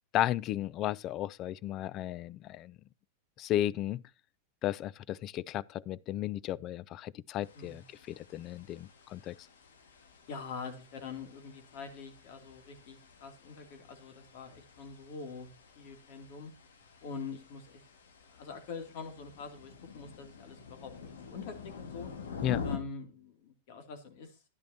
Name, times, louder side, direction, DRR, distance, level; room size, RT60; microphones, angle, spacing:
voice 1, 0.1-2.8 3.4-4.0 4.6-9.4 22.4-22.6, left 13 dB, 40° left, 0.4 m, -34 dB
sound 1, 7.4-22.8, left 6 dB, 85° left, 1.8 m, -47 dB
voice 2, 7.5-7.9 10.3-15.5 15.8-16.5 17.0-17.8 18.3-22.1 22.6-24.4, left 5 dB, 60° left, 2.5 m, -45 dB
10.5 x 10.5 x 2.8 m
hypercardioid pair, 115°, 0 cm